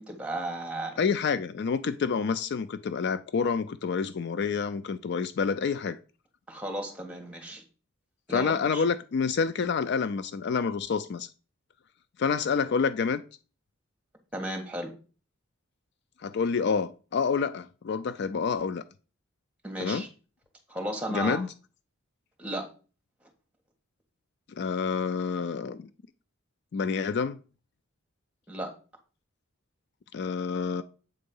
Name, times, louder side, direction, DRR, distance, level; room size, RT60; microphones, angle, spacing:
voice 1, 0.0-1.0 6.5-7.6 8.3-8.8 14.3-14.9 19.6-20.1 20.7-21.4 22.4-22.7 28.5-28.7, right 1 dB, 5° right, 1.5 m, -34 dB
voice 2, 1.0-6.0 8.3-11.3 12.2-13.2 16.2-18.8 19.8-20.0 21.1-21.5 24.6-25.9 26.7-27.4 30.1-30.8, left 5 dB, 50° left, 0.4 m, -28 dB
7.9 x 3.7 x 5.4 m
head